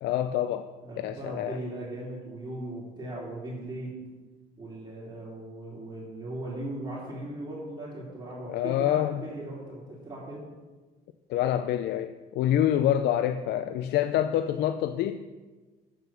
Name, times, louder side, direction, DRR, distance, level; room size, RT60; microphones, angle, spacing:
voice 1, 0.0-1.6 8.5-9.2 11.3-15.2, left 11 dB, 80° left, 10 dB, 0.4 m, -27 dB
voice 2, 0.8-4.0 4.6-10.4, right 1 dB, 25° right, -9 dB, 3.3 m, -38 dB
8.3 x 7.1 x 5.8 m, 1.3 s
cardioid pair, 110°, 17 cm